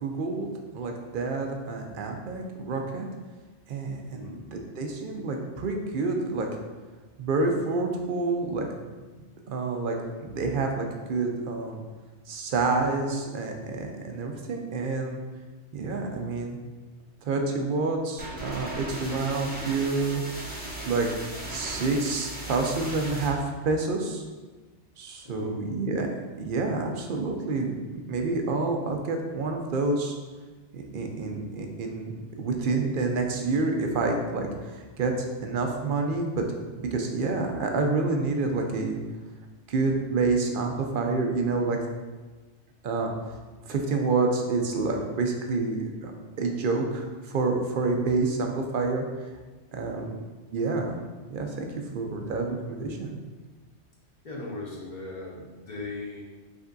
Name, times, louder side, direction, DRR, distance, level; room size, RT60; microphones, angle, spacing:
voice 1, 0.0-3.1 3.7-6.5 7.2-8.9 9.5-11.8 12.3-15.2 15.7-16.6 17.2-20.2 20.9-24.2 25.0-26.1 26.4-30.1 30.7-36.5 36.9-39.0 39.7-41.8 42.8-43.1 43.7-46.1 46.4-49.0 49.7-50.1 50.5-51.0 51.3-51.7 51.9-53.2, right 3 dB, 60° right, 3 dB, 0.6 m, -28 dB
voice 2, 4.0-4.4 25.2-25.6 49.9-50.2 54.2-56.2, left 2 dB, 45° left, -3 dB, 1.0 m, -38 dB
sound 1, 18.2-23.3, right 1 dB, 10° right, 0.9 m, -37 dB
5.0 x 3.4 x 2.6 m, 1.3 s
omnidirectional pair, 1.2 m